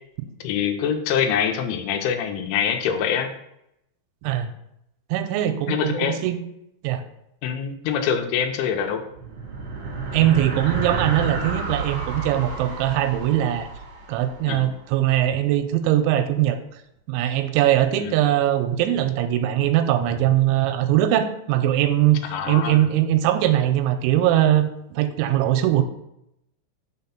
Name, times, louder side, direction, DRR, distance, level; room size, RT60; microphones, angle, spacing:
voice 1, 0.4-3.3 5.7-6.2 7.4-9.0 14.4-14.7 18.0-18.2 22.3-22.9, left 8 dB, 85° left, 6 dB, 3.2 m, -24 dB
voice 2, 4.2-4.5 5.1-6.4 6.8-7.0 10.1-13.7 14.1-16.6 17.1-22.2 22.5-25.8, right 12 dB, 85° right, 8 dB, 2.8 m, -21 dB
sound 1, 9.1-14.8, right 4 dB, 55° right, 1.6 m, -31 dB
6.6 x 4.1 x 5.7 m, 0.80 s
omnidirectional pair, 5.5 m